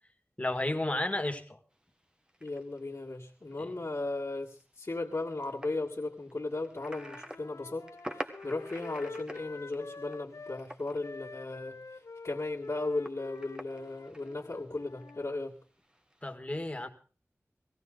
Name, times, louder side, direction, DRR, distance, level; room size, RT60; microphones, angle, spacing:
voice 1, 0.4-1.6 3.6-3.7 16.2-16.9, left 1 dB, 25° left, 6 dB, 2.0 m, -32 dB
sound 1, 1.8-1.9 2.3-11.1 11.5-12.0 12.3-15.1 15.8-16.3, equal, 15° right, 1.3 m, -47 dB
voice 2, 2.4-7.9 8.1-11.8 12.2-15.6, left 2 dB, 55° left, -5 dB, 1.8 m, -36 dB
Wind instrument woodwind instrument, 6.7-10.6 11.0-15.4, left 3 dB, 80° left, 0.7 m, -47 dB
17.5 x 16.0 x 3.9 m, 0.39 s
wide cardioid pair, 45°, 5 cm